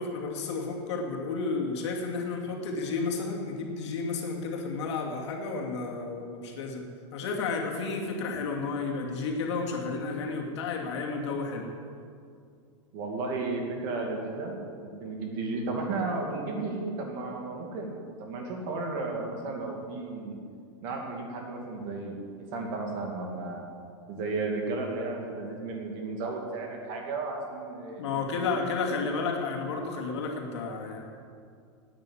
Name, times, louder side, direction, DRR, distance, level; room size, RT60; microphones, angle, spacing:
voice 1, 0.0-11.7 28.0-31.0, left 4 dB, 65° left, 1 dB, 2.7 m, -32 dB
voice 2, 12.9-17.9 18.2-20.4 20.8-23.6 24.1-28.7, right 3 dB, 35° right, 1 dB, 2.3 m, -34 dB
12.0 x 9.5 x 8.8 m, 2.3 s
supercardioid pair, 175°, 16 cm